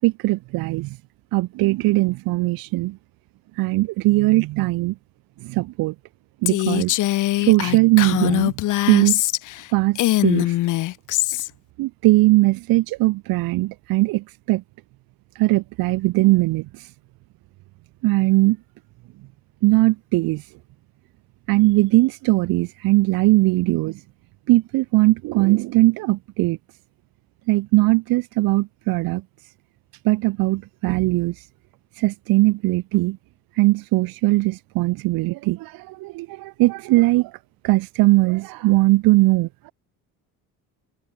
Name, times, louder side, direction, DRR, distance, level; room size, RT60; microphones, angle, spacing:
voice 1, 0.0-1.0 1.3-3.0 3.6-5.0 5.4-5.9 6.4-6.9 7.4-8.5 8.9-9.2 9.7-10.6 11.8-14.6 15.4-16.9 18.0-18.6 19.6-20.5 21.5-24.0 24.5-26.6 27.5-29.2 30.0-31.5 32.0-33.2 33.6-37.4 37.6-39.7, right 20 dB, 85° right, 7.2 m, -20 dB
Female speech woman speaking, 6.5-9.6 9.9-11.5, left 16 dB, 60° left, 2.4 m, -22 dB
open air
cardioid pair, 165°, 34 cm